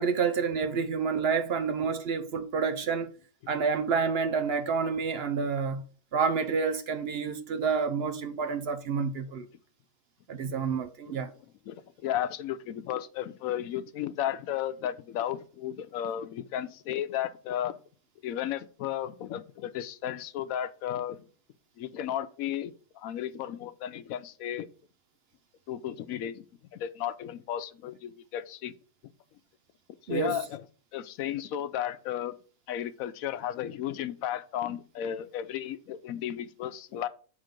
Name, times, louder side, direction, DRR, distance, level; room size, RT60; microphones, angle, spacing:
voice 1, 0.0-3.1 3.5-5.8 6.1-9.5 10.3-11.3 30.1-30.4, right 5 dB, 60° right, 0.7 m, -29 dB
voice 2, 11.7-17.7 18.2-21.3 21.8-24.7 25.7-26.5 26.7-28.7 30.1-30.6 30.9-32.3 32.7-37.1, left 11 dB, 90° left, 1.0 m, -34 dB
7.6 x 3.7 x 5.1 m
omnidirectional pair, 1.4 m